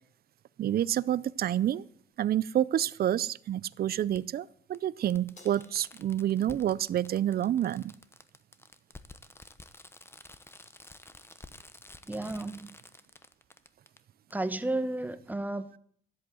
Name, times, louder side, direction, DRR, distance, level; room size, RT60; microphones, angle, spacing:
voice 1, 0.6-1.8 2.2-7.9, right 11 dB, 50° right, 0.5 m, -28 dB
Fireworks, 0.8-0.9 2.4-2.5 4.1-4.2 4.7-4.8 5.1-14.0 14.3-14.4, left 2 dB, 10° left, 0.9 m, -51 dB
Crash cymbal, 5.4-7.9, left 3 dB, 40° left, 4.1 m, -61 dB
voice 2, 12.1-12.8 14.3-15.8, right 2 dB, 10° right, 1.0 m, -33 dB
13.0 x 8.2 x 7.7 m
cardioid pair, 90°, 20 cm